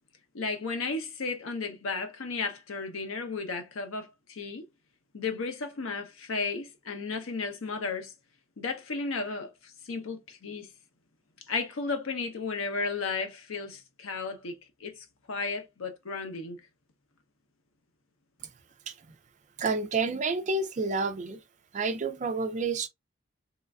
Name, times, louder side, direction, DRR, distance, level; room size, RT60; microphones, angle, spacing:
voice 1, 0.3-4.7 5.1-8.1 8.6-10.7 11.5-16.6, left 4 dB, 75° left, 0.7 m, -34 dB
voice 2, 19.6-21.4 21.7-22.9, right 4 dB, 35° right, 0.3 m, -29 dB
3.1 x 2.4 x 2.3 m
head